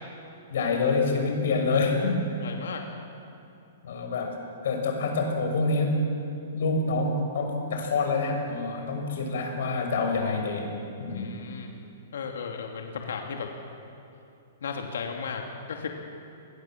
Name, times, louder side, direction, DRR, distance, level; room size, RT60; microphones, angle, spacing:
voice 1, 0.5-2.3 3.8-6.1 6.5-10.7 11.0-11.3, left 3 dB, 65° left, 3 dB, 6.1 m, -27 dB
voice 2, 2.4-2.8 11.1-11.7 12.1-13.5 14.6-15.9, left 6 dB, 85° left, 2 dB, 2.7 m, -35 dB
27.5 x 20.5 x 7.5 m, 2.7 s
hypercardioid pair, 170°, 0 cm